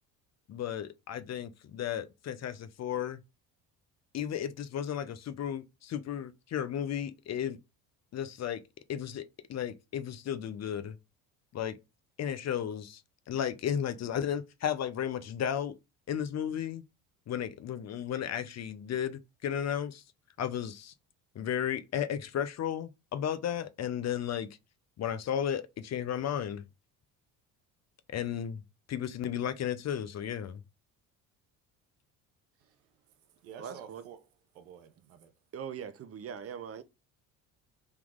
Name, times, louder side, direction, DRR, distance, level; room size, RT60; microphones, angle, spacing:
voice 1, 0.5-3.2 4.1-7.6 8.1-8.6 8.9-11.0 11.5-11.8 12.2-13.0 13.3-15.8 16.1-16.8 17.3-20.0 20.4-20.9 21.4-24.5 25.0-26.6 28.1-28.6 28.9-30.6, left 9 dB, 40° left, 0.6 m, -34 dB
voice 2, 32.6-34.2 34.5-35.3, right 8 dB, 85° right, 0.8 m, -51 dB
voice 3, 33.6-34.0 35.5-36.8, right 7 dB, 35° right, 0.7 m, -41 dB
3.6 x 3.0 x 3.6 m
supercardioid pair, 75°, 41 cm